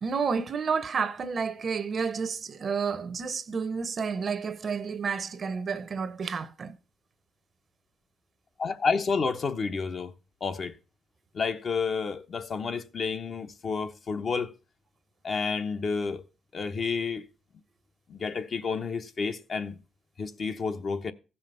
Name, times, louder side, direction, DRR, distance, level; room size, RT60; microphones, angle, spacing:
voice 1, 0.0-6.8, right 5 dB, 45° right, 0.8 m, -30 dB
voice 2, 8.6-10.1 10.4-10.8 11.3-14.5 15.2-16.3 16.5-17.3 18.1-19.8 20.2-21.1, left 5 dB, 50° left, 0.9 m, -30 dB
15.0 x 5.7 x 5.4 m
cardioid pair, 90°, 0 cm